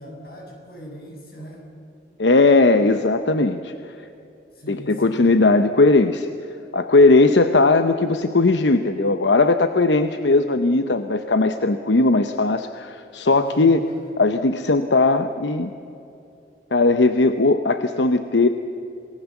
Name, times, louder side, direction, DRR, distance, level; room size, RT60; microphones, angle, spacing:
voice 1, 0.0-1.7 4.5-5.4 13.3-14.0, equal, 55° left, 0 dB, 6.9 m, -40 dB
voice 2, 2.2-3.7 4.7-6.3 6.7-13.8 14.2-15.7 16.7-18.5, left 3 dB, 85° left, 8 dB, 0.8 m, -18 dB
27.5 x 19.5 x 7.2 m, 2.7 s
head